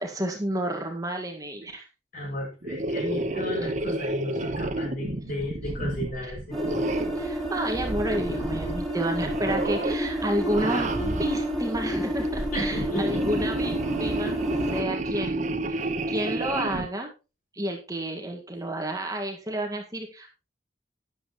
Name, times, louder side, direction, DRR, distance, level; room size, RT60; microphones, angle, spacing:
voice 1, 0.0-1.9 3.6-3.7 6.2-6.4 7.2-14.4 14.7-17.1 17.5-20.4, right 1 dB, 20° right, 2 dB, 1.8 m, -31 dB
voice 2, 2.1-6.6 12.5-13.2, left 1 dB, 50° left, 0 dB, 6.5 m, -34 dB
sound 1, 2.6-7.2 7.7-8.9 9.1-10.0 10.4-11.5 12.2-16.9, right 2 dB, 45° right, 1.0 m, -31 dB
sound 2, 6.5-14.8, right 1 dB, ahead, 4.0 m, -30 dB
12.0 x 10.5 x 3.1 m, 0.29 s
head